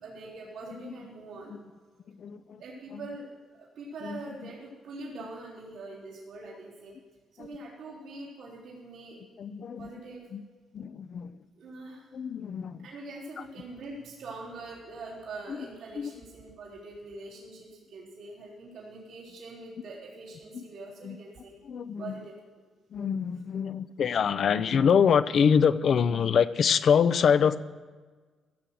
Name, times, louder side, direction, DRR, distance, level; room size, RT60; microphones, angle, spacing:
voice 1, 0.0-1.5 2.6-3.3 3.8-6.9 7.4-9.2 9.8-10.2 11.6-12.1 12.8-21.6 22.0-22.3, right 2 dB, 85° right, -7 dB, 3.7 m, -43 dB
voice 2, 2.1-2.6 2.9-3.0 4.0-4.5 7.4-7.5 9.4-9.9 10.3-10.4 10.7-11.4 12.1-12.9 15.5-15.6 16.0-16.1 20.5-20.6 21.0-21.2 21.6-22.2 22.9-27.6, left 7 dB, 60° left, 14 dB, 0.5 m, -25 dB
16.5 x 7.5 x 6.3 m, 1.4 s
cardioid pair, 90°, 0 cm